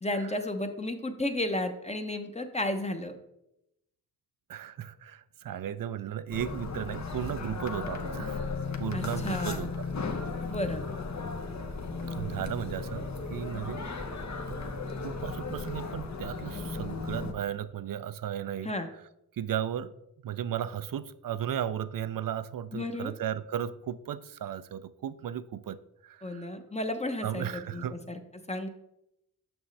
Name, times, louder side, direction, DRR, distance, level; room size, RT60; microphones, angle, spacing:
voice 1, 0.0-3.2 8.9-9.6 10.4-10.8 18.6-18.9 22.7-23.1 26.2-28.2 28.5-28.7, left 1 dB, 20° left, 6 dB, 0.8 m, -33 dB
voice 2, 4.5-8.4 8.8-9.9 12.2-13.9 14.5-14.6 15.0-18.7 19.3-19.9 20.2-26.5 27.2-28.0, right 10 dB, 65° right, 14 dB, 0.5 m, -35 dB
sound 1, 6.3-17.3, left 4 dB, 50° left, 0.8 m, -35 dB
6.4 x 6.1 x 3.3 m, 0.84 s
cardioid pair, 50°, 36 cm